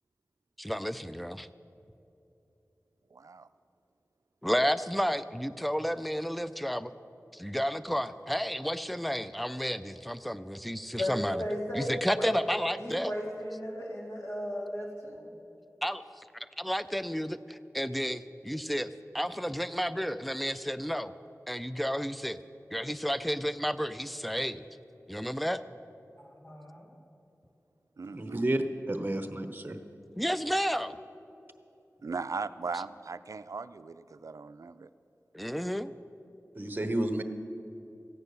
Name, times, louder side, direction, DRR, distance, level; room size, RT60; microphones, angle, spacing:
voice 1, 0.6-1.5 4.4-6.9 7.3-11.4 11.8-13.1 15.8-16.2 16.6-18.9 19.1-21.1 21.5-22.4 22.7-24.6 25.1-25.6 30.2-31.0 35.3-35.9, equal, ahead, 13 dB, 0.4 m, -31 dB
voice 2, 3.1-3.5 28.0-28.4 32.0-34.9, right 4 dB, 70° right, 13 dB, 0.4 m, -38 dB
voice 3, 11.0-12.5 12.8-15.3 26.2-26.9, equal, 55° left, -3 dB, 2.6 m, -36 dB
voice 4, 28.1-29.8 36.5-37.2, right 1 dB, 35° right, 7 dB, 1.0 m, -31 dB
15.0 x 9.5 x 6.7 m, 2.9 s
wide cardioid pair, 70°, 6 cm